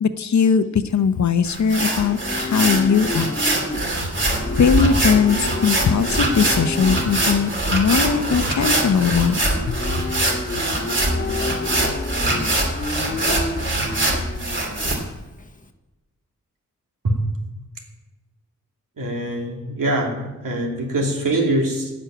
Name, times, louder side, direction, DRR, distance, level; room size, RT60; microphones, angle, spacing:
voice 1, 0.0-3.3 4.6-5.4 5.6-9.4 9.7-9.8, left 6 dB, 60° left, 11 dB, 0.8 m, -19 dB
Livestock farm animals working animals, 0.9-15.6, left 3 dB, 25° left, 0.9 m, -31 dB
sound 1, 1.4-14.9, right 1 dB, 35° right, 2.6 m, -23 dB
voice 2, 19.0-21.9, right 1 dB, 80° right, 0 dB, 2.9 m, -23 dB
14.5 x 6.4 x 9.2 m, 1.1 s
wide cardioid pair, 180°, 32 cm